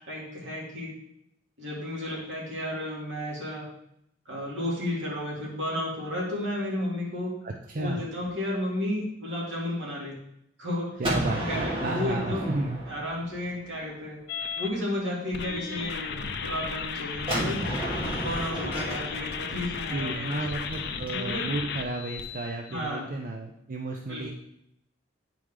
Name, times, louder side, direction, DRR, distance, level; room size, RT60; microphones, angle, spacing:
voice 1, 0.1-0.9 1.6-3.7 4.3-7.4 7.8-10.2 10.6-11.0 11.4-12.5 12.9-14.2 14.6-17.6 18.2-20.5 21.1-21.5 22.7-23.1 24.1-24.2, left 1 dB, 75° right, -4 dB, 2.4 m, -32 dB
voice 2, 7.4-8.0 11.0-12.8 19.9-24.3, right 2 dB, 50° right, 2 dB, 0.6 m, -33 dB
Gunshot gunfire, 11.0-13.8 17.3-21.1, right 1 dB, 30° right, 2.0 m, -32 dB
sound 1, 14.3-14.7 15.3-22.8, left 6 dB, 60° left, 0.6 m, -35 dB
9.0 x 4.9 x 3.6 m, 0.75 s
head